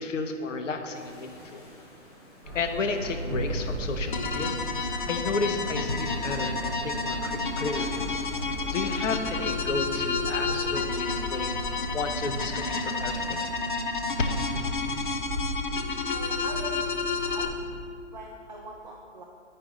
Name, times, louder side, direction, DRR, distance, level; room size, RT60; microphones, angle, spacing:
voice 1, 0.0-1.6 2.5-8.0 8.3-11.5 11.9-13.4 14.2-14.3, left 4 dB, 80° left, 6 dB, 1.0 m, -32 dB
sound 1, 0.9-14.5, equal, 20° left, 0.9 m, -52 dB
sound 2, 2.4-17.8, equal, 10° right, 1.3 m, -36 dB
sound 3, 4.1-17.5, left 4 dB, 45° left, 0.4 m, -31 dB
voice 2, 16.1-17.5 18.1-19.2, right 1 dB, 35° right, -1 dB, 0.5 m, -42 dB
10.5 x 4.7 x 3.7 m, 2.3 s
hypercardioid pair, 175°, 37 cm